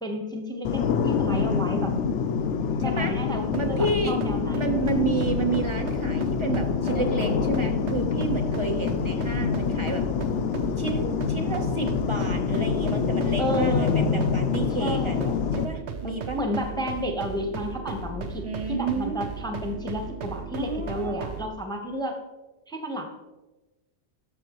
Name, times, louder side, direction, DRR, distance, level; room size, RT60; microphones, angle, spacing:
voice 1, 0.0-1.9 2.7-4.6 4.9-5.3 13.4-13.9 14.8-15.3 16.0-22.2 22.7-23.1, equal, 5° left, 3 dB, 0.8 m, -31 dB
sound 1, 0.6-15.6, left 6 dB, 85° left, 0.9 m, -26 dB
voice 2, 1.3-2.0 2.8-3.2 3.5-4.2 4.5-10.0 10.8-16.4 18.4-19.2 20.6-21.2, right 3 dB, 30° right, 4 dB, 0.8 m, -31 dB
sound 2, 3.4-21.5, right 4 dB, 75° right, 1.0 m, -36 dB
12.5 x 6.2 x 3.0 m, 1.1 s
omnidirectional pair, 1.2 m